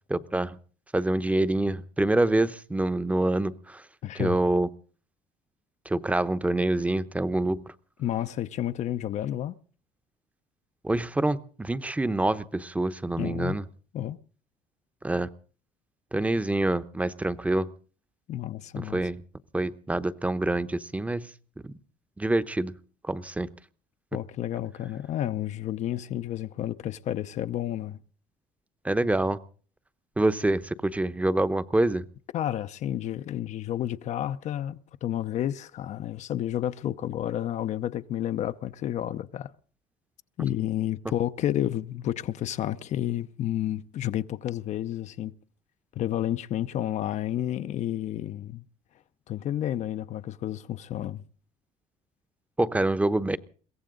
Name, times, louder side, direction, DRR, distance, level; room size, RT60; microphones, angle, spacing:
voice 1, 0.1-0.6 0.9-3.8 4.1-4.7 5.9-7.6 10.8-13.6 15.0-15.3 16.1-17.7 18.8-19.2 19.5-21.3 21.6-21.7 22.2-22.7 23.0-23.5 28.8-29.4 30.2-32.0 52.6-53.4, right 2 dB, 10° right, 0.8 m, -26 dB
voice 2, 4.0-4.4 8.0-9.5 13.2-13.6 13.9-14.2 18.3-19.0 24.1-28.0 32.3-39.5 40.4-45.3 45.9-48.6 49.3-51.2, left 12 dB, 55° left, 0.7 m, -31 dB
22.5 x 16.5 x 3.8 m
cardioid pair, 115°, 14 cm